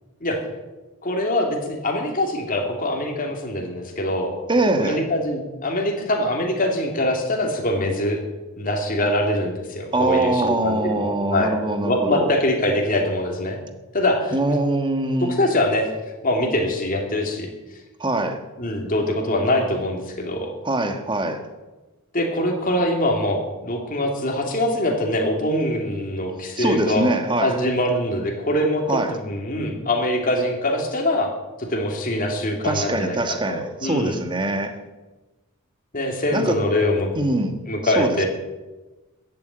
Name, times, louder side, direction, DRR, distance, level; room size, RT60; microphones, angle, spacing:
voice 1, 1.0-4.3 4.8-8.2 8.6-11.6 11.8-13.6 13.9-14.3 15.2-15.9 16.2-17.5 18.6-20.5 22.1-27.1 27.4-31.3 31.6-34.2 35.9-37.1 37.7-38.3, left 1 dB, 40° left, 2.8 m, -23 dB
voice 2, 4.5-5.0 9.9-12.3 14.3-15.4 18.0-18.4 20.6-21.4 26.6-27.6 28.9-29.2 32.6-34.8 36.3-36.6 37.1-37.5 37.8-38.2, right 2 dB, 20° right, 1.4 m, -23 dB
14.5 x 9.0 x 8.9 m
head